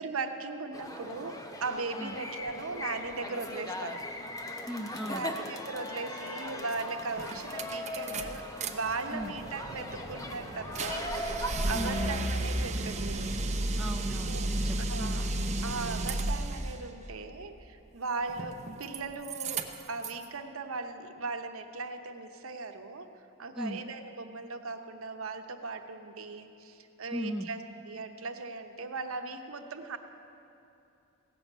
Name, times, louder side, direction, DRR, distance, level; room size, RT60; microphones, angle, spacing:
voice 1, 0.0-4.0 5.1-11.2 11.7-13.3 14.3-14.5 14.9-15.3 15.6-23.1 23.4-27.6 27.9-30.0, right 3 dB, 85° right, 6 dB, 0.9 m, -38 dB
sound 1, 0.7-12.2, left 1 dB, 15° left, 0.8 m, -39 dB
voice 2, 4.7-5.3 9.1-9.3 11.7-12.0 13.8-15.2 23.6-23.8 27.1-27.5, equal, ahead, 1 dB, 0.4 m, -37 dB
sound 2, 6.7-6.8 7.2-8.7 9.0-16.8 18.3-19.0 19.2-20.2, right 2 dB, 35° right, 0.7 m, -33 dB
17.0 x 7.1 x 8.2 m, 2.8 s
head